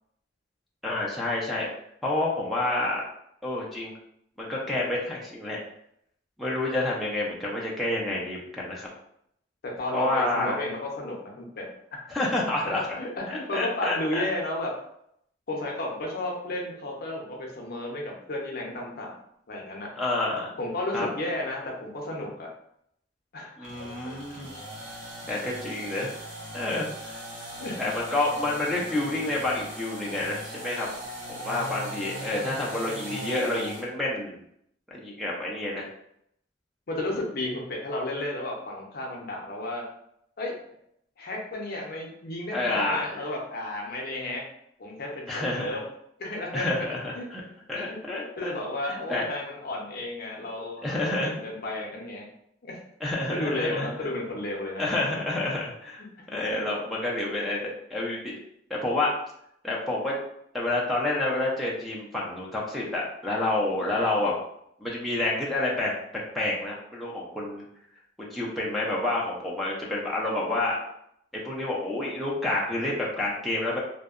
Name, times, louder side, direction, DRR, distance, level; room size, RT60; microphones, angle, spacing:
voice 1, 0.8-1.7 2.0-3.0 3.4-3.9 4.4-5.6 6.4-8.9 9.9-10.7 12.1-13.0 13.3-14.3 20.0-20.5 20.9-21.1 23.6-24.5 25.3-26.1 26.5-27.2 27.8-30.9 31.3-34.4 34.9-35.9 42.5-43.2 45.3-45.8 46.5-47.4 47.7-48.6 48.9-49.2 50.8-51.5 53.0-53.9 54.8-56.0 56.3-58.4 58.7-59.1 59.6-60.2 60.5-64.3 64.8-65.9 66.3-67.6 68.2-70.8 71.3-73.8, left 2 dB, ahead, -4 dB, 0.4 m, -29 dB
voice 2, 9.8-11.7 12.6-14.7 15.5-19.1 19.5-19.9 20.6-22.5 23.3-23.9 24.3-24.4 24.9-25.0 27.6-28.0 36.9-39.8 40.4-40.5 41.2-44.4 44.8-45.8 46.2-47.3 47.7-52.3 52.6-52.8 53.3-54.8 56.0-56.1, left 1 dB, 55° left, -1 dB, 0.6 m, -33 dB
sound 1, 23.6-33.9, equal, 80° right, 0.8 m, -39 dB
2.7 x 2.1 x 2.4 m, 0.74 s
head